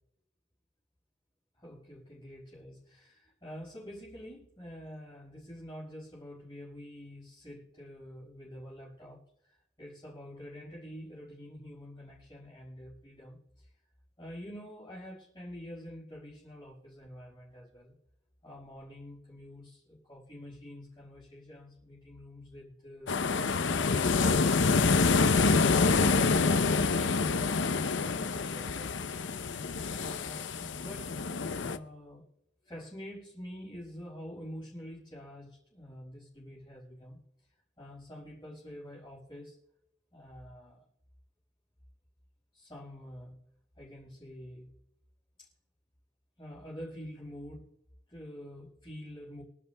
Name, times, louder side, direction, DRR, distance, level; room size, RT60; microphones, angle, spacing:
voice 1, 1.6-13.7 14.2-17.9 18.4-23.4 29.9-31.2 31.6-32.2 32.6-37.2 37.8-39.6 40.1-40.8 42.5-43.4 43.8-44.7 45.4-45.5 46.4-47.7 48.1-49.4, equal, 25° left, -6 dB, 5.1 m, -47 dB
sound 1, 23.1-31.8, left 4 dB, 85° left, 0.7 m, -27 dB
25.5 x 11.0 x 2.3 m, 0.79 s
head